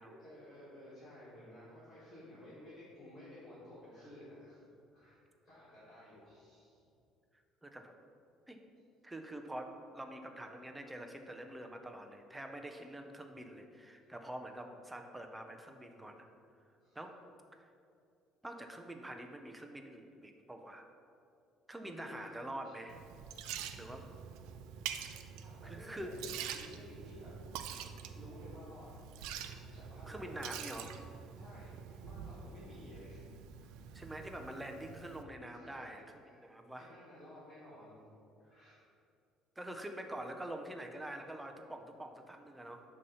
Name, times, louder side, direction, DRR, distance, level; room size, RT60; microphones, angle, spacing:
voice 1, 0.1-4.6 4.9-6.8 16.8-17.0 21.8-22.7 23.7-24.0 25.0-27.3 27.7-28.9 29.2-30.5 31.4-33.3 33.5-34.0 35.5-36.4 36.8-38.0 38.4-38.8, left 1 dB, 30° left, -10 dB, 1.5 m, -55 dB
voice 2, 7.6-7.9 8.5-8.6 9.0-16.3 17.0-17.2 17.5-17.6 18.4-20.9 21.7-23.0 23.8-24.1 25.6-26.2 30.1-30.9 33.9-36.0 36.4-36.9 39.6-42.8, right 1 dB, 5° right, 4 dB, 0.4 m, -46 dB
Liquid, 22.9-35.2, right 8 dB, 85° right, 0.3 m, -46 dB
6.3 x 2.8 x 5.4 m, 2.5 s
cardioid pair, 165°, 0 cm